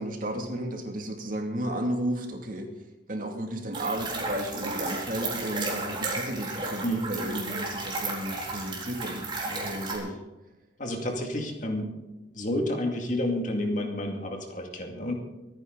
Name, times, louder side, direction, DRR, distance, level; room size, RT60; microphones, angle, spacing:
voice 1, 0.0-2.7 3.1-9.3 9.6-10.2, right 1 dB, 45° right, 3 dB, 2.5 m, -33 dB
sound 1, 3.7-10.0, right 3 dB, 25° right, 4.1 m, -33 dB
voice 2, 10.8-12.0 12.3-15.1, left 1 dB, 45° left, 2 dB, 2.4 m, -30 dB
25.0 x 9.8 x 4.0 m, 1.0 s
head